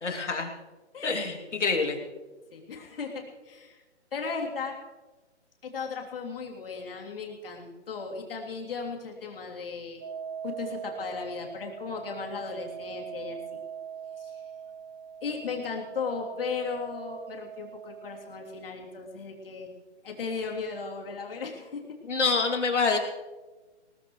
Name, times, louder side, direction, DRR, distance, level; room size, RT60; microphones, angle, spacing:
voice 1, 0.0-0.5 1.0-2.0 22.1-23.0, left 4 dB, 80° left, 2 dB, 2.9 m, -26 dB
voice 2, 0.9-1.5 2.5-3.8 4.1-4.8 5.6-10.0 10.4-13.6 14.2-14.4 15.2-19.7 20.0-21.8, left 5 dB, 50° left, 0 dB, 3.2 m, -36 dB
sound 1, 10.0-18.6, right 7 dB, 15° right, 0.6 m, -42 dB
20.5 x 19.0 x 3.2 m, 1.2 s
hypercardioid pair, 155°, 35 cm